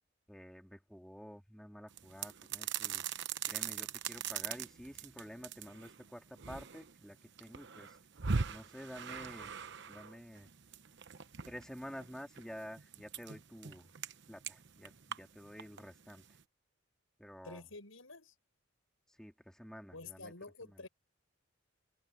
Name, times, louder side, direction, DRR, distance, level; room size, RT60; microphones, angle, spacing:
voice 1, 0.3-3.0 3.5-8.0 8.5-9.5 9.9-10.5 11.5-13.9 14.3-14.9 15.2-16.4 17.2-17.6 19.1-20.3 20.6-20.9, equal, 5° left, 2.1 m, -50 dB
sound 1, 1.9-16.4, right 6 dB, 60° right, 1.0 m, -42 dB
voice 2, 17.4-18.3 19.9-20.9, left 3 dB, 80° left, 6.7 m, -49 dB
head